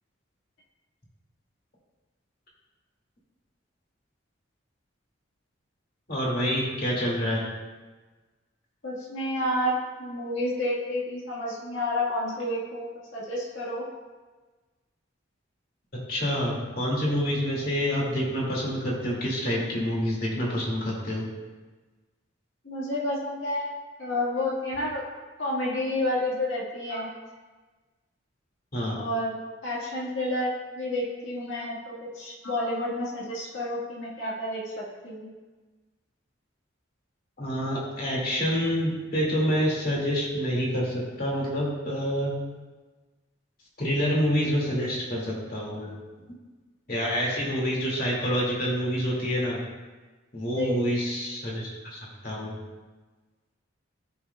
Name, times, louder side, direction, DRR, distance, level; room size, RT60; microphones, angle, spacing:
voice 1, 6.1-7.5 16.1-21.2 28.7-29.0 37.4-42.3 43.8-45.9 46.9-49.6 50.3-52.6, equal, 45° left, -4 dB, 2.1 m, -27 dB
voice 2, 8.8-13.8 22.6-23.7 24.0-25.0 25.4-27.1 28.9-35.3 50.4-50.9, left 1 dB, 70° left, -5 dB, 1.6 m, -30 dB
13.0 x 5.7 x 2.3 m, 1.3 s
head